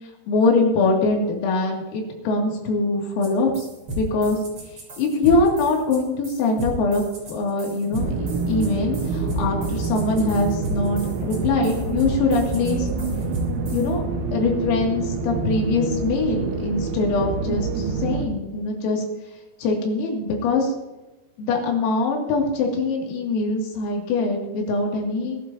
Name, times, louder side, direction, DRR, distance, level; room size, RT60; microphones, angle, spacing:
voice 1, 0.3-3.7 4.0-4.4 5.0-7.0 7.3-12.9 13.7-14.0 14.3-19.0 19.6-20.7 21.4-25.4, left 3 dB, 85° left, -1 dB, 5.3 m, -23 dB
sound 1, 3.2-3.3 3.5-13.9, right 1 dB, 30° right, 3.2 m, -34 dB
sound 2, 8.0-18.3, right 4 dB, 80° right, 3.9 m, -27 dB
21.0 x 12.5 x 2.9 m, 1.0 s
omnidirectional pair, 5.9 m